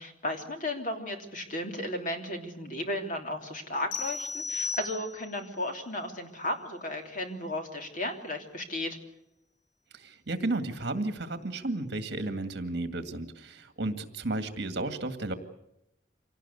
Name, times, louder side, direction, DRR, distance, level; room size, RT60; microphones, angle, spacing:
voice 1, 0.0-9.0, left 1 dB, 45° left, 4 dB, 3.3 m, -34 dB
sound 1, 3.9-5.5, left 4 dB, 90° left, 6.4 m, -35 dB
voice 2, 9.9-15.3, right 2 dB, 60° right, 8 dB, 2.1 m, -33 dB
26.0 x 18.0 x 8.3 m, 0.85 s
head